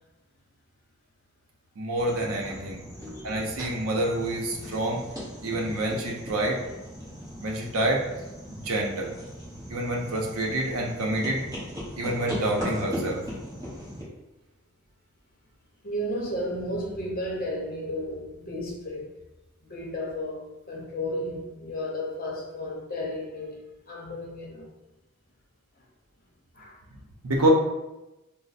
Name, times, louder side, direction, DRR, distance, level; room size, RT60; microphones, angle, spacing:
voice 1, 1.8-2.8 3.2-5.0 5.4-6.6 7.4-8.0 8.5-9.1 9.7-11.4 12.0-13.2 26.9-27.0 27.2-27.5, right 1 dB, 85° right, 0 dB, 0.6 m, -27 dB
sound 1, 2.0-14.0, equal, 15° right, 1.0 m, -38 dB
voice 2, 3.0-3.3 15.8-19.1 19.6-24.7 26.5-26.8 27.4-27.5, left 1 dB, 40° left, -2 dB, 0.8 m, -33 dB
3.1 x 2.0 x 4.0 m, 0.99 s
head